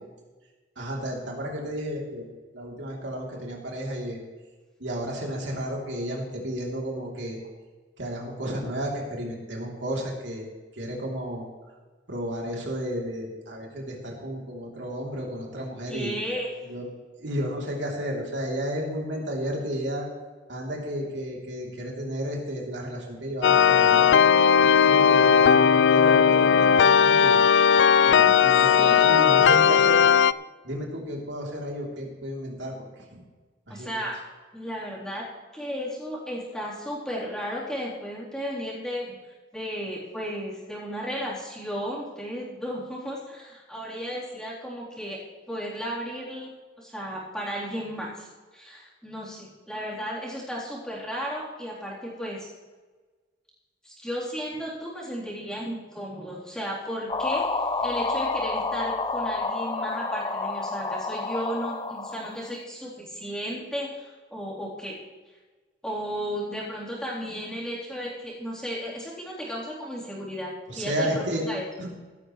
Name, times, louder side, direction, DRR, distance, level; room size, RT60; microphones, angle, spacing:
voice 1, 0.8-2.3 2.5-4.2 4.8-7.4 8.0-10.5 10.7-11.5 12.1-16.1 16.7-16.8 17.2-20.1 20.5-27.4 28.0-30.1 30.6-32.7 33.1-33.2 33.7-34.0 70.7-71.4 71.8-72.1, equal, 80° right, -2 dB, 3.4 m, -32 dB
voice 2, 15.9-16.5 28.1-29.1 33.7-34.2 34.5-35.2 35.5-39.2 39.5-45.2 45.5-46.5 46.8-48.3 48.5-52.5 53.8-65.0 65.8-71.1 71.4-71.7, equal, 5° left, -6 dB, 3.8 m, -34 dB
sound 1, 23.4-30.3, left 7 dB, 75° left, 0.4 m, -17 dB
sound 2, 57.1-62.5, left 3 dB, 25° left, 0.6 m, -29 dB
16.5 x 13.0 x 3.3 m, 1.3 s
head